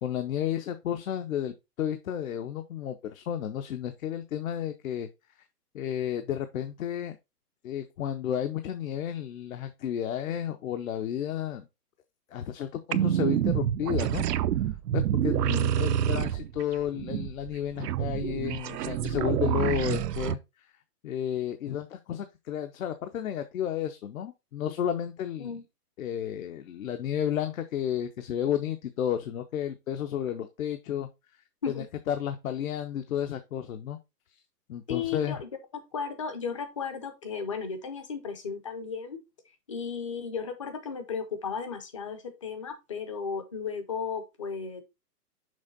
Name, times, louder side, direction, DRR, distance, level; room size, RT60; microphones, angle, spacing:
voice 1, 0.0-5.1 5.7-7.2 7.6-11.7 12.3-14.2 14.9-20.4 21.0-25.5 26.0-31.1 31.7-34.0 34.7-35.4, left 10 dB, 60° left, 8 dB, 0.8 m, -32 dB
sound 1, 12.9-20.3, right 10 dB, 85° right, 0.7 m, -27 dB
voice 2, 34.9-39.2 39.7-44.8, left 5 dB, 20° left, 9 dB, 0.5 m, -35 dB
6.4 x 4.4 x 3.9 m, 0.24 s
hypercardioid pair, 165°, 47 cm